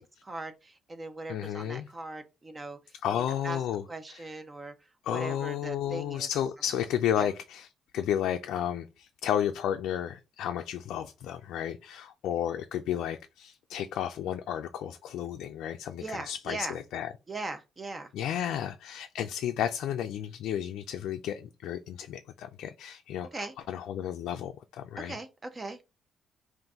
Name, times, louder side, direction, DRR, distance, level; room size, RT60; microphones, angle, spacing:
voice 1, 0.2-2.8 3.1-3.6 3.9-6.3 7.2-7.3 16.0-16.8 17.3-18.6 23.3-23.5 25.0-25.8, right 2 dB, 30° right, 0.5 m, -40 dB
voice 2, 1.3-1.9 3.0-3.8 4.1-4.2 5.1-7.7 7.9-17.1 18.1-25.2, left 10 dB, 85° left, 0.3 m, -32 dB
3.9 x 2.5 x 3.5 m
cardioid pair, 90°, 0 cm